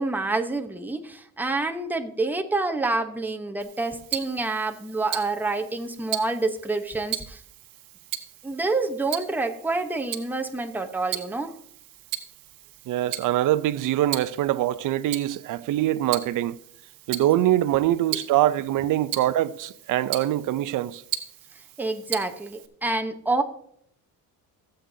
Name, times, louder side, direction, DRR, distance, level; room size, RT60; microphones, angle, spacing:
voice 1, 0.0-7.4 8.4-11.5 21.8-23.4, right 3 dB, 5° right, 0.9 m, -27 dB
Tick-tock, 3.6-22.7, right 12 dB, 85° right, 1.1 m, -38 dB
voice 2, 12.9-16.6 17.1-21.0, right 13 dB, 65° right, 0.6 m, -23 dB
16.0 x 7.9 x 2.7 m
cardioid pair, 120°, 33 cm